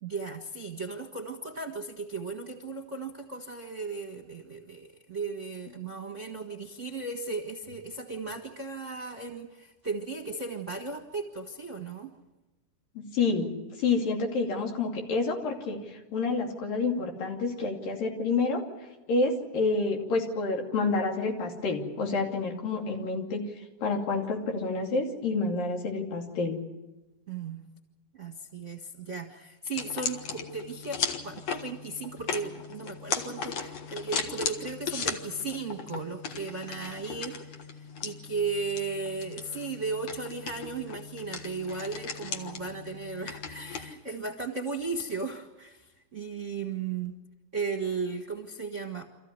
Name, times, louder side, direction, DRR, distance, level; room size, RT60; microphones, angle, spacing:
voice 1, 0.0-12.1 27.3-27.7 28.1-37.6 38.0-47.2 47.5-49.1, right 4 dB, 35° right, 3 dB, 1.3 m, -36 dB
voice 2, 13.0-13.5 13.8-18.6 19.1-26.6, left 3 dB, 80° left, 1 dB, 4.4 m, -29 dB
sound 1, 29.7-43.9, left 6 dB, 55° left, 2.3 m, -37 dB
26.5 x 14.5 x 9.7 m, 1.1 s
omnidirectional pair, 3.9 m